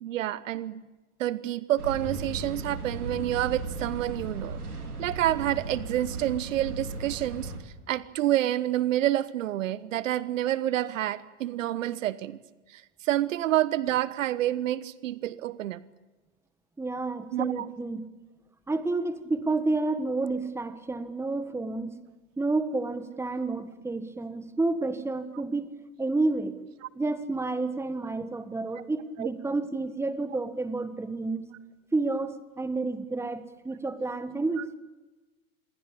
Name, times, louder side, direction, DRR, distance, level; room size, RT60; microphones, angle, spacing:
voice 1, 0.0-0.8 1.2-4.6 5.0-7.5 7.9-12.4 12.7-15.8 17.3-17.7 29.2-29.3, right 13 dB, 60° right, 17 dB, 1.2 m, -28 dB
sound 1, 1.8-7.6, right 3 dB, 90° right, 4.1 m, -36 dB
voice 2, 16.8-18.1 18.7-22.0 22.4-25.7 26.0-26.6 26.9-31.4 31.9-34.7, right 3 dB, 5° right, 11 dB, 1.6 m, -30 dB
27.5 x 21.5 x 8.6 m, 1.2 s
figure-of-eight pair, 95°, 44 cm